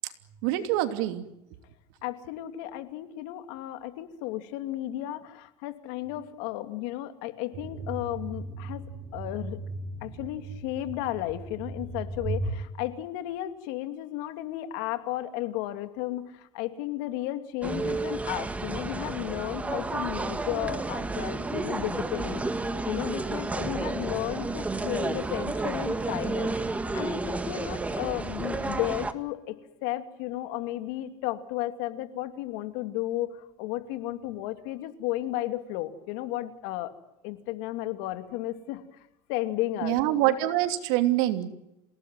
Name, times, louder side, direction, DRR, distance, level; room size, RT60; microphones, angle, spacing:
voice 1, 0.4-1.3 39.8-41.5, right 14 dB, 80° right, 8 dB, 3.0 m, -25 dB
voice 2, 2.0-8.8 9.1-9.6 10.0-22.4 22.9-36.9 37.2-38.8 39.3-40.0, left 15 dB, 80° left, 9 dB, 2.7 m, -34 dB
sound 1, 7.5-12.6, right 3 dB, 50° right, 4.6 m, -36 dB
sound 2, 17.6-29.1, right 3 dB, 15° right, 1.9 m, -31 dB
28.0 x 18.0 x 9.3 m, 0.91 s
supercardioid pair, 125°, 11 cm